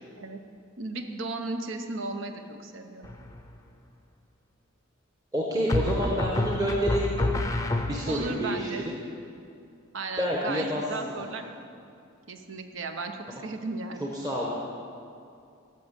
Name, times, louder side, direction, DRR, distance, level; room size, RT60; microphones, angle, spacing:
voice 1, 0.8-3.1 5.9-6.2 8.1-8.9 9.9-11.5 12.3-14.1, right 3 dB, 60° right, 6 dB, 0.8 m, -35 dB
sound 1, 3.0-3.6 5.7-8.4, left 2 dB, 15° left, 0.6 m, -29 dB
voice 2, 5.3-7.1 7.9-8.7 10.2-11.2 13.3-13.4 14.0-14.5, equal, 20° right, -3 dB, 1.1 m, -28 dB
11.0 x 6.5 x 8.1 m, 2.5 s
head